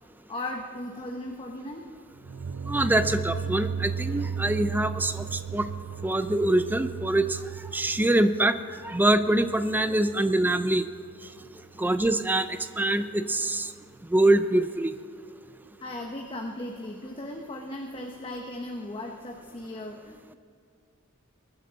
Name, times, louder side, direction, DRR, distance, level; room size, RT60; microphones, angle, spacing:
voice 1, 0.3-1.9 11.8-11.9 15.8-20.4, left 1 dB, 25° left, 1 dB, 0.9 m, -37 dB
sound 1, 2.2-11.1, right 6 dB, 75° right, 0.6 m, -36 dB
voice 2, 2.7-5.2 5.5-5.7 6.0-7.3 7.7-8.6 8.8-10.8 11.8-12.5 12.8-13.7 14.1-14.9, right 1 dB, 10° right, 11 dB, 0.5 m, -24 dB
22.0 x 9.9 x 4.0 m, 2.2 s
head